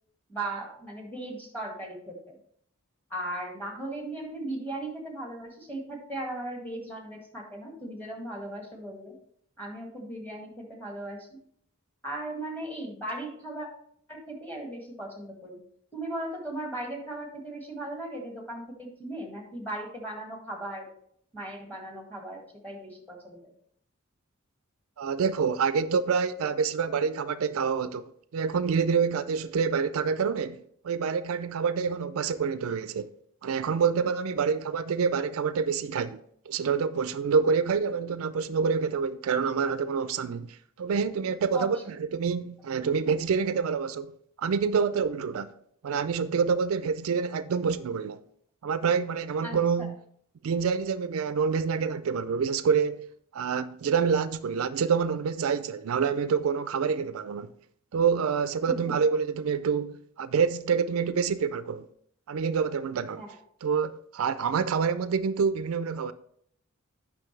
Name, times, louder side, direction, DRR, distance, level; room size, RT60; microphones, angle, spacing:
voice 1, 0.3-2.3 3.1-9.2 9.6-11.4 12.0-13.7 14.1-15.6 15.9-20.9 21.3-23.5 41.5-41.7 49.4-49.9 58.7-58.8 63.2-63.4, right 1 dB, 10° left, 1.9 m, -37 dB
voice 2, 25.0-33.1 33.4-36.2 36.5-45.5 45.8-48.2 48.6-50.0 50.4-53.1 53.3-57.5 57.9-61.9 62.3-63.2 63.6-66.1, right 6 dB, 70° right, 0.4 m, -27 dB
8.9 x 5.9 x 3.2 m
head